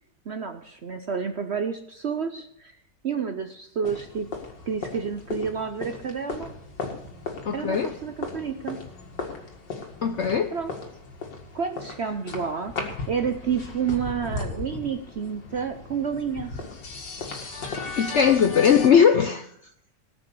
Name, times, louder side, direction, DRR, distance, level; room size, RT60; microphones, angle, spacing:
voice 1, 0.3-2.8 3.0-4.3 4.7-6.5 7.5-8.8 10.5-10.7 11.5-12.7 13.1-16.6, right 6 dB, 55° right, 7 dB, 0.7 m, -30 dB
sound 1, 3.8-18.9, left 4 dB, 85° left, 2.5 m, -36 dB
voice 2, 7.4-7.9 10.0-10.5 18.0-19.5, left 7 dB, 60° left, 8 dB, 0.7 m, -19 dB
18.0 x 6.0 x 6.9 m, 0.70 s
omnidirectional pair, 1.9 m